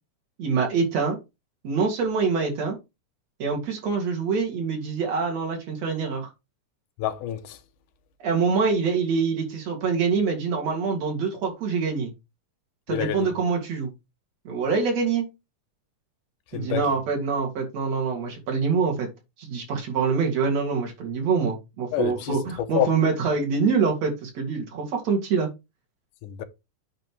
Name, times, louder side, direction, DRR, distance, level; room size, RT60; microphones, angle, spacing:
voice 1, 0.4-1.2 1.6-2.8 3.4-6.3 8.2-12.1 12.9-13.9 14.4-15.3 16.5-19.1 19.4-25.5, right 5 dB, 60° right, 3.2 m, -25 dB
voice 2, 7.0-7.6 12.9-13.3 16.5-16.9 21.9-22.9 26.2-26.4, left 11 dB, 90° left, 2.5 m, -28 dB
9.0 x 3.3 x 6.1 m
omnidirectional pair, 3.5 m